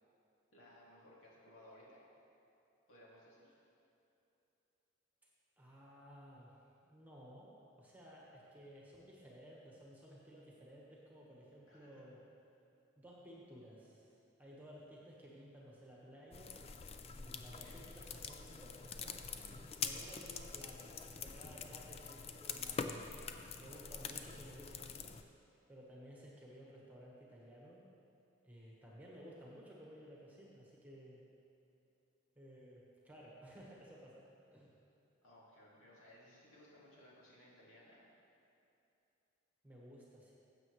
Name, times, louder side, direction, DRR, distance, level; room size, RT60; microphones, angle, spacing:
voice 1, 0.5-2.0 2.9-3.5 11.7-12.1 17.6-17.8 19.8-20.0 21.7-22.1 35.2-38.0, left 1 dB, 75° left, -6 dB, 2.5 m, -61 dB
voice 2, 5.6-6.5 6.8-12.2 13.0-16.6 17.1-25.2 25.7-27.9 28.4-31.2 32.3-34.7 39.6-40.3, equal, 10° right, -5 dB, 1.3 m, -56 dB
sound 1, 16.3-25.2, left 5 dB, 30° left, 0.3 m, -45 dB
15.5 x 7.6 x 3.2 m, 2.9 s
head